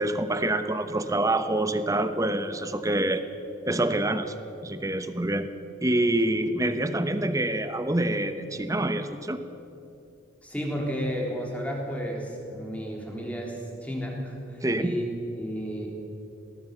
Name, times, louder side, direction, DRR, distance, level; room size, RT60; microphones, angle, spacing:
voice 1, 0.0-3.2 3.6-4.3 4.6-5.5 5.8-9.4 14.6-14.9, right 1 dB, 15° right, 10 dB, 1.0 m, -26 dB
voice 2, 10.4-15.1 15.4-15.9, equal, 10° left, -1 dB, 3.6 m, -32 dB
20.5 x 18.0 x 7.2 m, 2.9 s
head